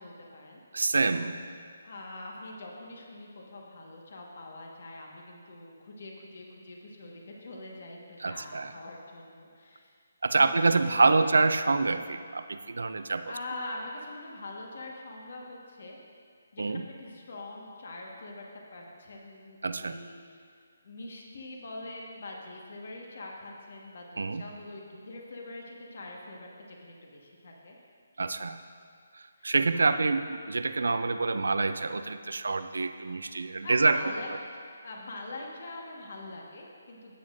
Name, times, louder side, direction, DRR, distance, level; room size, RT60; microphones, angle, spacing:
voice 1, 0.0-0.6 1.8-9.9 10.3-11.3 12.9-16.0 16.5-18.4 18.7-20.4 20.8-27.8 29.4-30.0 33.4-37.1, left 2 dB, 60° left, -1 dB, 1.4 m, -44 dB
voice 2, 0.7-1.4 8.2-8.7 10.2-13.3 16.6-16.8 19.6-20.0 24.2-24.4 28.2-28.6 29.1-34.0, right 3 dB, 75° right, 11 dB, 0.4 m, -26 dB
13.0 x 8.5 x 2.6 m, 2.2 s
figure-of-eight pair, 155°, 0 cm